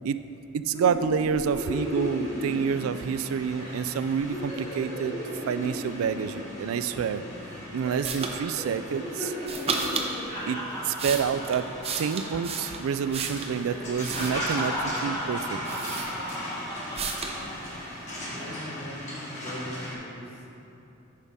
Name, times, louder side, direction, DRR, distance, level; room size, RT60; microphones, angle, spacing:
voice 1, 0.5-5.2 5.5-7.2 7.7-9.3 10.5-11.7 12.0-15.6, right 7 dB, 85° right, 12 dB, 0.3 m, -28 dB
sound 1, 0.7-3.3 3.6-3.8 4.1-7.5 7.8-8.3 8.6-12.6 12.9-13.1 13.5-17.6 18.1-18.5, equal, 20° left, 1.6 m, -35 dB
sound 2, 1.7-19.9, left 1 dB, 35° left, 1.5 m, -40 dB
sound 3, 8.0-8.4 9.4-10.1 10.7-13.6 14.0-14.8 15.3-15.4 15.6-16.5 16.9-17.4, right 4 dB, 30° right, 0.6 m, -33 dB
voice 2, 18.3-20.5, equal, 85° left, -2 dB, 1.4 m, -40 dB
10.0 x 5.4 x 3.6 m, 2.9 s
head